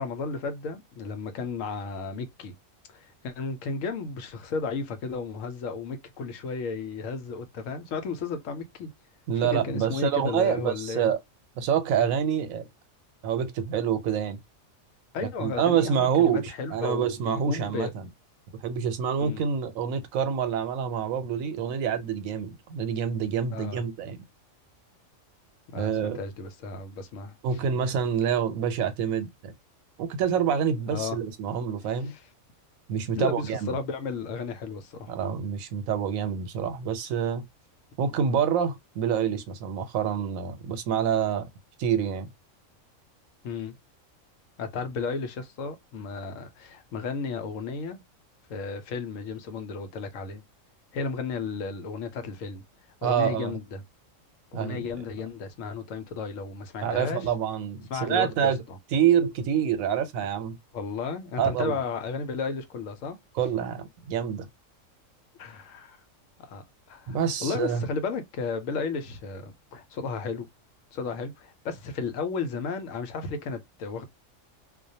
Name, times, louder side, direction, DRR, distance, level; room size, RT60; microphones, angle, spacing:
voice 1, 0.0-2.5 2.9-8.9 9.4-11.1 15.1-17.9 19.2-19.4 23.5-23.8 25.7-27.6 30.9-31.2 32.0-32.2 33.2-35.1 43.4-43.7 44.6-48.0 48.5-50.4 50.9-52.6 53.0-53.8 54.5-57.3 57.9-58.8 60.7-63.2 65.4-66.0 66.4-70.5 70.9-74.1, left 4 dB, 75° left, 0.9 m, -34 dB
voice 2, 9.3-11.2 11.6-12.7 13.2-14.4 15.2-18.1 18.6-24.2 25.7-26.2 27.4-29.5 30.0-32.1 32.9-33.7 35.1-37.4 38.0-41.5 41.8-42.3 53.0-53.6 54.5-54.9 56.8-58.6 58.9-60.6 61.4-61.8 63.4-64.5 67.1-67.8, right 8 dB, 85° right, 1.0 m, -27 dB
2.3 x 2.1 x 2.6 m
omnidirectional pair, 1.4 m